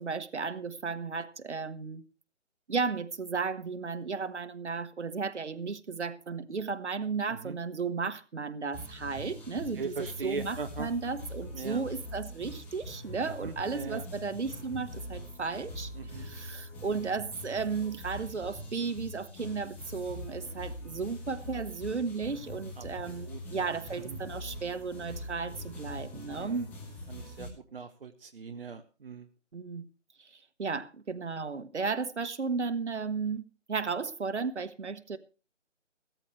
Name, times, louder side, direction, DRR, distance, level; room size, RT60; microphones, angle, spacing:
voice 1, 0.0-2.0 2.7-10.0 10.2-26.7 29.5-29.9 30.2-30.3 30.6-33.4 33.7-35.2, right 5 dB, 65° right, 1.5 m, -34 dB
sound 1, 8.7-27.5, left 1 dB, 5° left, 1.2 m, -43 dB
voice 2, 9.7-10.9 11.5-11.8 13.4-14.0 16.0-16.3 22.8-23.7 24.0-24.2 26.4-26.7 27.1-29.3, right 5 dB, 50° right, 1.0 m, -40 dB
16.0 x 13.5 x 3.1 m
figure-of-eight pair, 155°, 37 cm